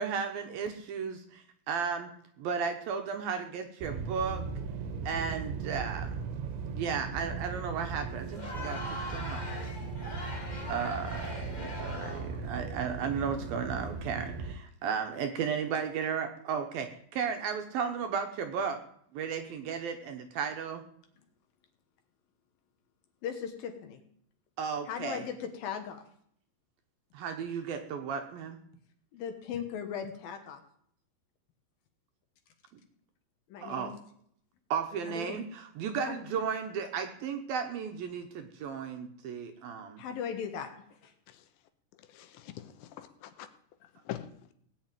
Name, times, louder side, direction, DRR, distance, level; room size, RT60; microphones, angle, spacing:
voice 1, 0.0-2.1 2.4-4.4 5.0-6.1 6.7-8.8 9.1-9.5 10.6-18.8 19.1-20.8 24.6-25.2 27.1-28.6 33.6-33.9 34.7-40.0, right 6 dB, 70° right, 6 dB, 2.5 m, -34 dB
sound 1, 3.8-14.5, right 5 dB, 90° right, 3.7 m, -38 dB
Crowd, 8.2-12.4, left 1 dB, 40° left, 0.6 m, -41 dB
voice 2, 23.2-24.0 24.9-26.1 29.1-30.6 33.5-34.0 35.1-35.4 36.0-36.2 40.0-40.7, left 7 dB, 65° left, 6 dB, 2.6 m, -38 dB
voice 3, 42.0-43.5 44.1-44.3, left 12 dB, 80° left, 9 dB, 3.3 m, -43 dB
18.0 x 7.3 x 9.1 m, 0.67 s
omnidirectional pair, 5.1 m